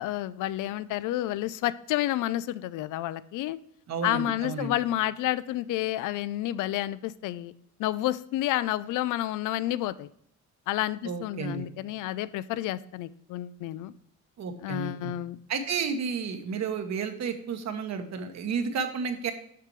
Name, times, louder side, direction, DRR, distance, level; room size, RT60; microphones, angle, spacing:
voice 1, 0.0-3.6 4.0-7.5 7.8-10.1 10.7-13.9 14.6-15.4, left 14 dB, 85° left, 17 dB, 0.5 m, -30 dB
voice 2, 3.9-4.8 11.0-11.6 14.4-15.1 15.5-19.3, right 6 dB, 60° right, 7 dB, 1.2 m, -32 dB
6.7 x 6.6 x 3.1 m, 0.69 s
cardioid pair, 90°, 30 cm